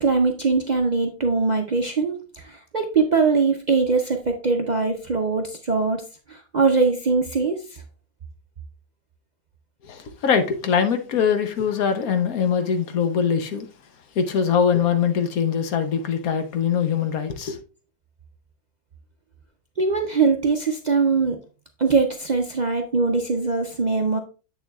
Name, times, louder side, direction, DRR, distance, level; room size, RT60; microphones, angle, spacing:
voice 1, 0.0-6.0 6.3-7.6 19.8-21.4 21.8-24.2, right 4 dB, 60° right, 0.4 m, -22 dB
voice 2, 9.8-13.7 14.2-17.6, left 7 dB, 70° left, 1.2 m, -22 dB
7.5 x 6.8 x 2.3 m
omnidirectional pair, 1.6 m